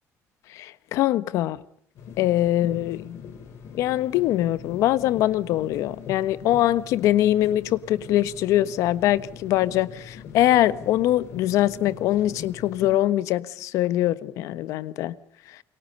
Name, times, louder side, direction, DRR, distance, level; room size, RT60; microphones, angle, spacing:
voice 1, 0.5-1.6 2.2-3.2 3.8-15.1, left 14 dB, 70° left, 1.3 m, -23 dB
sound 1, 2.0-12.9, left 7 dB, 50° left, 4.7 m, -42 dB
29.0 x 23.5 x 5.4 m
cardioid pair, 175°, 6 cm